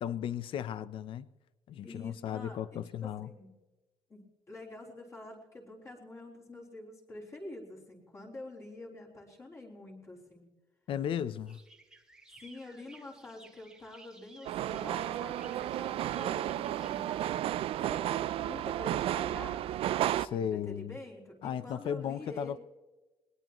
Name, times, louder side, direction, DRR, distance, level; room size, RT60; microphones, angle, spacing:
voice 1, 0.0-1.3 1.7-3.3 10.9-11.6 20.1-21.0 21.4-22.6, left 9 dB, 55° left, 0.6 m, -35 dB
voice 2, 1.8-3.6 4.1-10.5 12.4-17.2 17.7-19.7 20.2-22.6, left 2 dB, 30° left, 3.8 m, -47 dB
sound 1, 11.5-17.4, right 2 dB, 5° right, 1.5 m, -58 dB
sound 2, 14.4-20.3, right 12 dB, 65° right, 0.4 m, -32 dB
21.0 x 20.5 x 3.1 m
cardioid pair, 175°, 10 cm